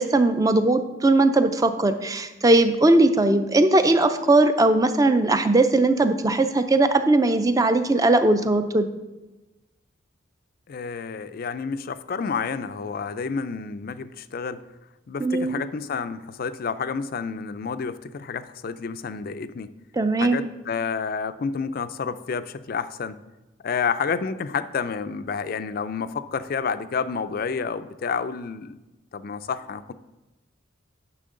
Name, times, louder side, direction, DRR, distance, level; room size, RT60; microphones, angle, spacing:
voice 1, 0.0-8.9 15.2-15.6 20.0-20.5, right 2 dB, 20° right, 9 dB, 0.5 m, -19 dB
voice 2, 10.7-14.6 15.1-19.7 20.2-23.2 23.6-28.8 29.1-29.9, left 5 dB, 50° left, 12 dB, 0.4 m, -29 dB
10.0 x 6.2 x 3.8 m, 1.1 s
head